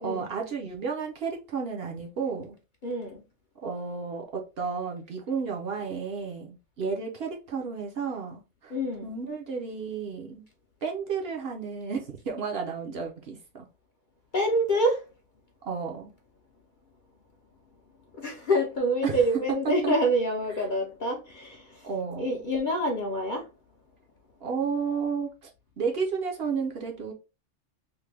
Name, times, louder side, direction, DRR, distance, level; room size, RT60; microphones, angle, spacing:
voice 1, 0.0-2.6 3.6-8.7 9.0-10.4 10.8-13.7 15.7-16.1 19.0-19.2 19.6-19.9 21.8-22.4 24.4-25.5 25.8-27.1, right 5 dB, 60° right, 0.8 m, -32 dB
voice 2, 2.8-3.2 8.7-9.1 14.3-15.0 18.2-21.9 22.2-23.5, equal, 50° left, 0.6 m, -27 dB
3.2 x 2.1 x 3.2 m
omnidirectional pair, 1.3 m